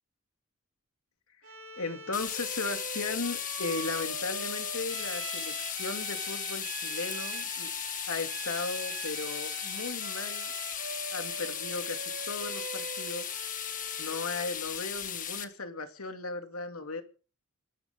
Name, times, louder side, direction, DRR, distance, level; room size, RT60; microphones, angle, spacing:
Bowed string instrument, 1.4-14.6, right 5 dB, 75° right, 4.4 m, -43 dB
voice 1, 1.8-7.7 8.1-10.5 11.1-13.3 14.0-17.0, left 3 dB, 90° left, 6 dB, 2.7 m, -36 dB
sound 1, 2.1-15.4, left 9 dB, 40° left, 1.7 m, -36 dB
26.0 x 13.0 x 3.8 m, 0.39 s
head